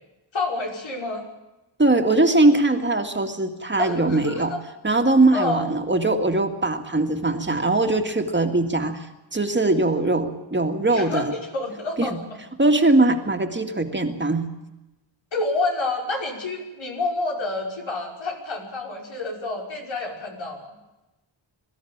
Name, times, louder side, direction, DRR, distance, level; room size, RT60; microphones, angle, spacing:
voice 1, 0.3-1.2 3.8-4.6 5.3-5.7 10.9-12.2 15.3-20.7, left 3 dB, 85° left, 0 dB, 5.6 m, -28 dB
voice 2, 1.8-4.5 4.8-11.3 12.0-12.2 12.6-14.5, right 2 dB, 25° right, 5 dB, 2.1 m, -21 dB
23.0 x 14.5 x 8.8 m, 1.0 s
wide cardioid pair, 120°, 45 cm